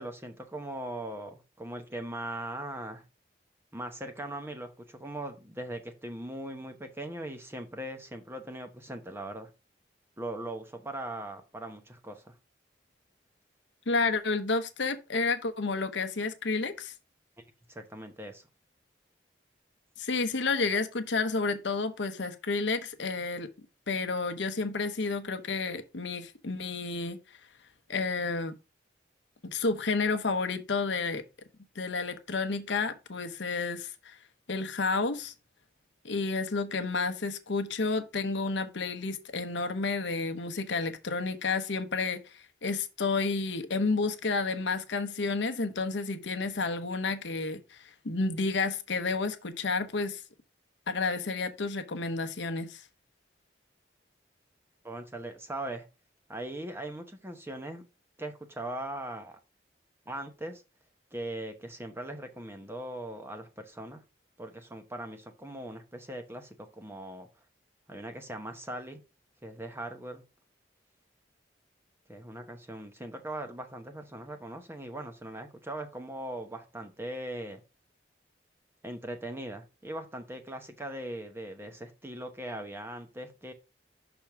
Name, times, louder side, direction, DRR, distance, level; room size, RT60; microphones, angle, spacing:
voice 1, 0.0-3.0 3.7-9.5 10.2-12.3 17.7-18.4 54.8-55.9 56.3-57.8 58.2-59.4 60.1-60.6 61.1-64.0 64.4-67.3 67.9-69.0 69.4-70.2 72.1-77.6 78.8-83.5, right 1 dB, 10° right, 0.8 m, -40 dB
voice 2, 13.9-16.9 20.0-23.5 23.9-27.2 27.9-28.6 29.4-31.2 31.8-34.2 34.5-35.3 36.0-50.2 50.9-52.8, left 3 dB, 75° left, 0.9 m, -31 dB
6.1 x 3.5 x 5.7 m
head